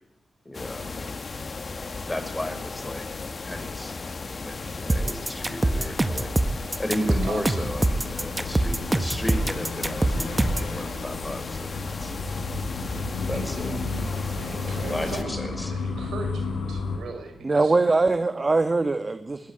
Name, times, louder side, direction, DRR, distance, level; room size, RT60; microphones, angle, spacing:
voice 1, 0.4-1.2 2.0-3.1 3.4-4.0 4.3-12.1 13.3-13.8 14.6-15.7, left 1 dB, 15° left, 8 dB, 5.9 m, -34 dB
sound 1, 0.5-15.2, left 4 dB, 50° left, 2.2 m, -36 dB
sound 2, 4.9-10.7, right 2 dB, 20° right, 1.6 m, -24 dB
sound 3, 7.5-17.0, left 3 dB, 85° left, 7.7 m, -32 dB
voice 2, 13.3-17.8, right 3 dB, 85° right, 6 dB, 5.7 m, -39 dB
voice 3, 17.4-19.5, right 3 dB, 35° right, 9 dB, 1.8 m, -22 dB
21.0 x 17.5 x 9.4 m, 0.85 s
cardioid pair, 50°, 0 cm